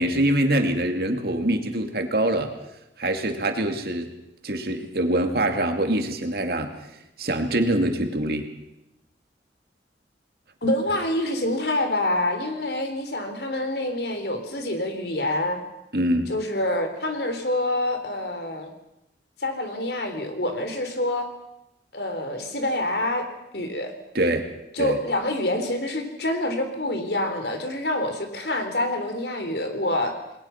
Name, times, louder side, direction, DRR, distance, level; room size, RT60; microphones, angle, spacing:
voice 1, 0.0-2.5 3.0-4.1 4.4-6.7 7.2-8.5 15.9-16.3 24.1-24.5 24.8-25.0, right 1 dB, 60° right, 5 dB, 2.5 m, -24 dB
voice 2, 10.6-15.6 16.3-18.7 19.4-21.3 21.9-23.2 23.5-23.9 24.7-30.1, left 1 dB, 65° left, 6 dB, 3.7 m, -26 dB
28.5 x 20.5 x 5.9 m, 0.87 s
head